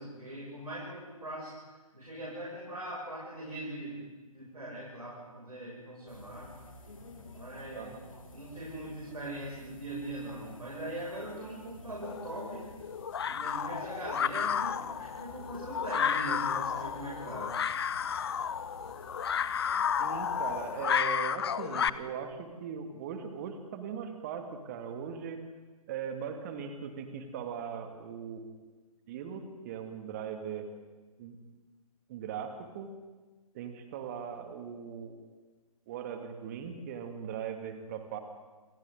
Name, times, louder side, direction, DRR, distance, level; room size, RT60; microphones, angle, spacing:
voice 1, 0.0-1.5 1.9-4.0 4.3-6.5 7.3-7.9 8.3-12.7 13.2-17.6, right 1 dB, 75° right, -5 dB, 6.2 m, -41 dB
sound 1, 6.1-20.9, left 2 dB, 60° left, 2.9 m, -51 dB
sound 2, 12.0-21.9, left 7 dB, 40° left, 0.7 m, -32 dB
voice 2, 20.0-25.4 25.9-28.5 29.1-30.7 31.2-31.4 32.1-32.9 33.5-35.2 35.9-38.2, right 7 dB, 25° right, 6 dB, 2.1 m, -39 dB
28.0 x 26.5 x 3.8 m, 1.3 s
figure-of-eight pair, 135°, 19 cm